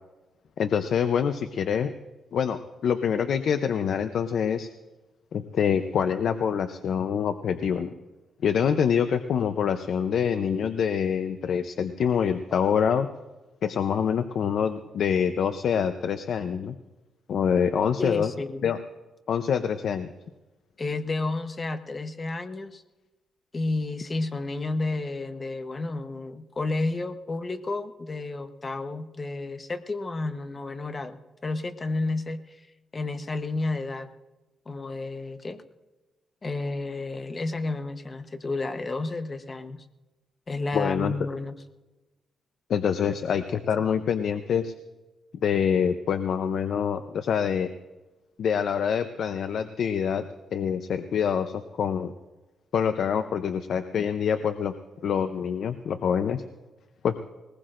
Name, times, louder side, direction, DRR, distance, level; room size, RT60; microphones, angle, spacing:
voice 1, 0.6-1.9 2.3-4.7 5.3-7.9 8.4-13.1 13.6-16.8 17.3-18.3 18.6-18.8 19.3-20.1 40.7-41.1 42.7-44.7 45.4-47.7 48.4-50.3 50.5-52.1 52.7-54.7 55.0-56.4 57.0-57.1, left 7 dB, 70° left, 9 dB, 0.6 m, -25 dB
voice 2, 18.0-18.7 20.8-22.8 23.5-32.7 32.9-34.1 34.7-35.6 36.4-39.8 40.5-41.6 43.1-43.2 43.5-43.8, left 2 dB, 30° left, 9 dB, 0.9 m, -31 dB
21.0 x 19.5 x 2.5 m, 1.1 s
cardioid pair, 115°, 0 cm